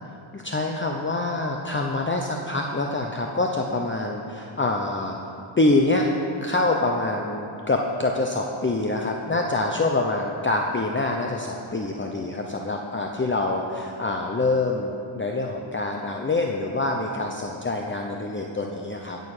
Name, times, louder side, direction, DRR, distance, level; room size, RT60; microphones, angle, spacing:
voice 1, 0.3-5.2 5.6-6.1 6.4-19.2, left 2 dB, 25° left, 1 dB, 0.9 m, -25 dB
17.0 x 6.8 x 6.7 m, 2.6 s
wide cardioid pair, 95°, 49 cm